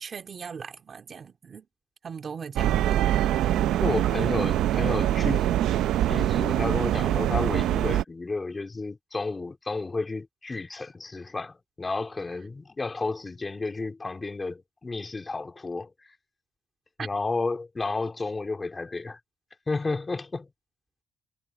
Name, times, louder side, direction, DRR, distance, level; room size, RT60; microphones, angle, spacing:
voice 1, 0.0-1.7 2.0-3.1 4.2-4.3 17.0-17.1, right 6 dB, 35° right, 2.5 m, -39 dB
sound 1, 2.6-8.0, right 12 dB, 75° right, 0.7 m, -24 dB
voice 2, 3.8-5.8 6.1-16.1 17.0-19.2 19.7-20.5, left 3 dB, 15° left, 3.1 m, -32 dB
cardioid pair, 155°, 0 cm